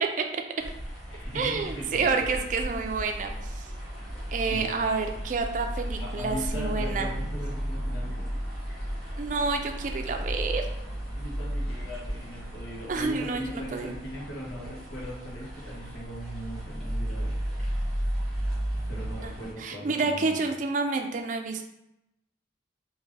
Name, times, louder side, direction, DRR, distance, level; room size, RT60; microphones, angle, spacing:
voice 1, 0.0-0.4 1.3-3.7 4.3-7.1 9.2-10.7 12.9-13.9 19.2-19.3 19.6-21.6, right 4 dB, 40° right, 4 dB, 0.3 m, -29 dB
sound 1, 0.6-19.5, equal, ahead, 1.2 m, -34 dB
voice 2, 1.1-2.4 4.5-4.8 6.0-8.3 11.1-17.4 18.9-20.5, equal, 90° left, -5 dB, 1.3 m, -39 dB
3.5 x 2.8 x 3.2 m, 0.86 s
head